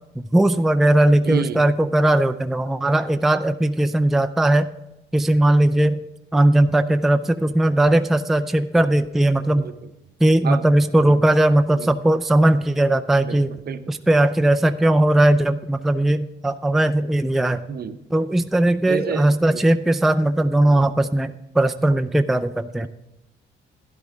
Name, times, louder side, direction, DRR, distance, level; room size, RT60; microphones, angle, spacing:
voice 1, 0.3-4.7 5.1-6.0 6.3-9.6 10.2-13.5 13.9-17.6 18.1-22.9, right 1 dB, ahead, 8 dB, 0.4 m, -18 dB
voice 2, 1.3-1.7 9.6-9.9 10.4-10.7 11.0-11.2 11.8-11.9 13.2-13.4 13.7-14.0 17.7-18.0 18.9-19.6 20.6-20.8 22.8-22.9, right 7 dB, 50° right, 10 dB, 0.8 m, -30 dB
12.0 x 11.0 x 3.5 m, 0.91 s
cardioid pair, 90°, 20 cm